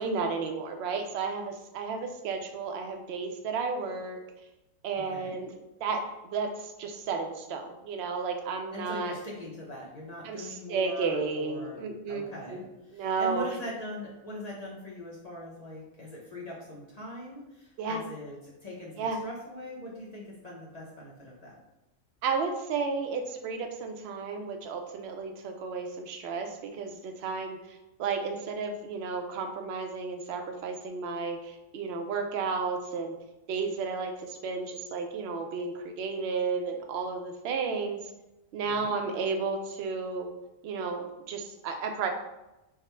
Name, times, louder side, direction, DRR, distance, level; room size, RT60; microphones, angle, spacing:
voice 1, 0.0-4.2 4.8-5.5 5.8-9.2 10.2-12.2 12.5-12.6 12.9-13.4 17.8-18.0 19.0-19.2 22.2-27.6 28.0-33.1 33.5-38.0 38.5-40.3 40.6-42.1, right 4 dB, 65° right, 4 dB, 0.6 m, -32 dB
voice 2, 4.9-5.4 8.7-11.8 12.1-21.5 38.6-38.9, left 1 dB, 40° left, -5 dB, 0.6 m, -41 dB
3.5 x 2.1 x 4.2 m, 0.95 s
omnidirectional pair, 1.5 m